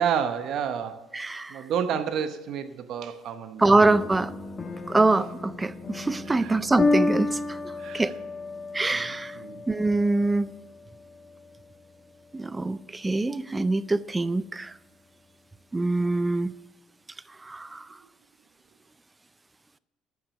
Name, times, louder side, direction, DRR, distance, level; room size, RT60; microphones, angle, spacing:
voice 1, 0.0-1.1 1.5-3.7 6.3-6.6 7.8-8.1 8.9-9.6, right 8 dB, 65° right, 9 dB, 0.9 m, -30 dB
voice 2, 1.1-1.6 3.6-4.3 4.9-7.4 7.9-8.1 8.7-9.3 9.7-10.5 12.3-14.7 15.7-16.5 17.4-17.8, right 2 dB, 20° right, 16 dB, 0.4 m, -24 dB
sound 1, 3.8-12.8, left 3 dB, 30° left, 1.3 m, -32 dB
14.0 x 6.0 x 6.9 m, 1.1 s
supercardioid pair, 90°, 0 cm